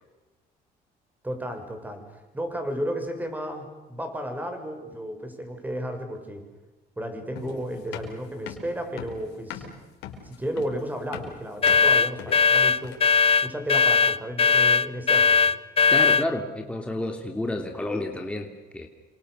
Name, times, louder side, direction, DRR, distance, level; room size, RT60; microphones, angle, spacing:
voice 1, 1.2-6.5 7.0-9.7 10.2-13.0 13.4-15.4, equal, 10° right, 6 dB, 6.9 m, -33 dB
sound 1, 7.4-13.2, left 9 dB, 85° left, 4.7 m, -40 dB
sound 2, 11.6-16.3, left 5 dB, 35° left, 0.9 m, -19 dB
voice 2, 15.9-18.9, left 1 dB, 5° left, 3 dB, 3.0 m, -30 dB
29.5 x 26.0 x 6.7 m, 1.2 s
cardioid pair, 110°, 17 cm